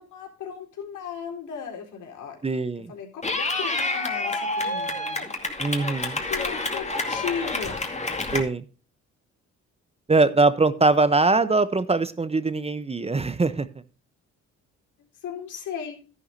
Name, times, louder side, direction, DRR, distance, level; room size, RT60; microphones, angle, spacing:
voice 1, 0.0-2.4 2.9-5.3 6.3-7.8 15.2-16.0, left 7 dB, 80° left, 1 dB, 4.1 m, -36 dB
voice 2, 2.4-2.9 5.6-6.2 8.3-8.6 10.1-13.7, right 3 dB, 20° right, 14 dB, 0.8 m, -22 dB
Clapping / Cheering, 3.2-8.4, left 2 dB, 20° left, 2.3 m, -28 dB
12.5 x 11.0 x 2.7 m, 0.36 s
cardioid pair, 90°, 30 cm